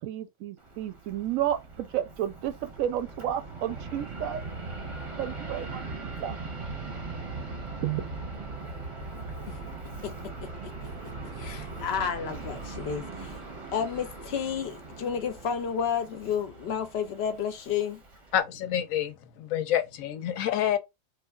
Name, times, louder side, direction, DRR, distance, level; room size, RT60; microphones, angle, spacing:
voice 1, 0.0-4.5 5.2-5.8 6.2-6.4 7.8-8.0, right 11 dB, 90° right, 1.0 m, -31 dB
Fixed-wing aircraft airplane, 0.6-18.4, right 3 dB, 30° right, 0.6 m, -40 dB
voice 2, 10.6-11.1 11.4-13.4 13.7-18.0, left 7 dB, 65° left, 0.7 m, -31 dB
voice 3, 18.3-20.8, left 10 dB, 85° left, 1.0 m, -28 dB
3.0 x 2.4 x 2.2 m
omnidirectional pair, 1.4 m